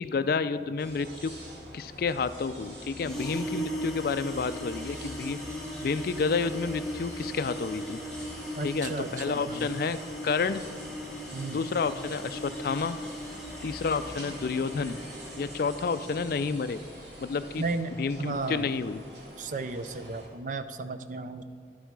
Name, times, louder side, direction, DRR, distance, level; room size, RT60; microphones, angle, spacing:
voice 1, 0.0-1.3 1.7-5.4 5.8-8.0 8.6-10.0 10.2-10.6 11.5-13.0 13.6-15.0 15.4-16.8 17.2-17.7 18.0-19.0, left 5 dB, 55° left, 13 dB, 0.3 m, -30 dB
sound 1, 0.8-20.3, equal, 85° right, 2.3 m, -45 dB
sound 2, 3.0-16.9, equal, ahead, 1.3 m, -39 dB
voice 2, 8.5-9.7 11.3-11.6 17.6-18.7 19.4-21.4, right 3 dB, 45° right, 10 dB, 0.5 m, -34 dB
11.0 x 8.1 x 4.7 m, 2.2 s
head